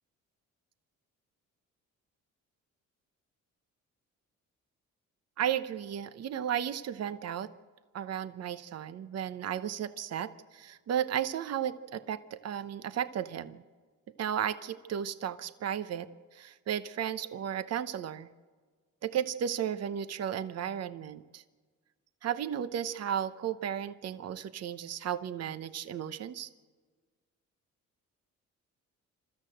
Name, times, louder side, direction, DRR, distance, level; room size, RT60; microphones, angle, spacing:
voice 1, 5.4-7.5 7.9-13.6 14.2-18.3 19.0-21.4 22.2-26.5, right 9 dB, 55° right, 12 dB, 0.9 m, -34 dB
27.5 x 13.5 x 7.8 m, 1.5 s
cardioid pair, 90°, 30 cm